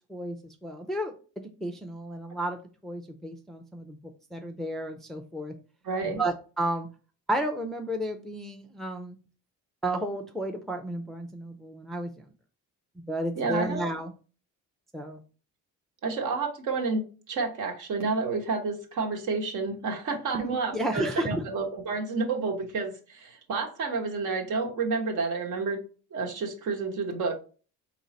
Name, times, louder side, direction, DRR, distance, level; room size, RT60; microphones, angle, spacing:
voice 1, 0.1-4.0 4.3-5.5 6.0-6.9 7.3-9.2 9.8-12.2 13.0-14.1 14.9-15.2 20.3-21.4, right 1 dB, ahead, 3 dB, 0.5 m, -32 dB
voice 2, 5.8-6.2 13.4-13.9 16.0-25.8 26.1-27.3, right 4 dB, 60° right, 3 dB, 1.3 m, -30 dB
3.9 x 3.1 x 4.1 m, 0.38 s
cardioid pair, 100°, 34 cm